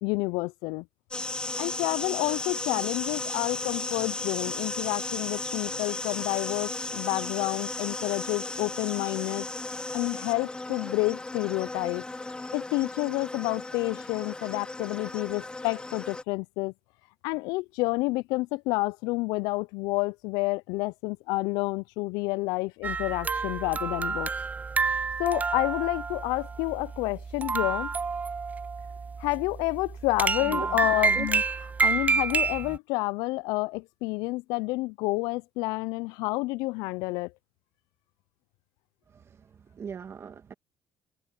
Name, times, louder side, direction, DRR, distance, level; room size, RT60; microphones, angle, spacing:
voice 1, 0.0-0.9 1.6-9.5 9.9-12.0 12.5-16.7 17.2-24.3 25.2-27.9 29.2-31.4 31.8-37.3, left 24 dB, 85° left, 0.4 m, -29 dB
sound 1, 1.1-16.2, left 2 dB, 15° left, 0.9 m, -35 dB
sound 2, 22.8-32.8, right 5 dB, 25° right, 0.3 m, -29 dB
voice 2, 30.4-31.3 39.1-40.5, right 7 dB, 45° right, 2.0 m, -41 dB
supercardioid pair, 75°, 6 cm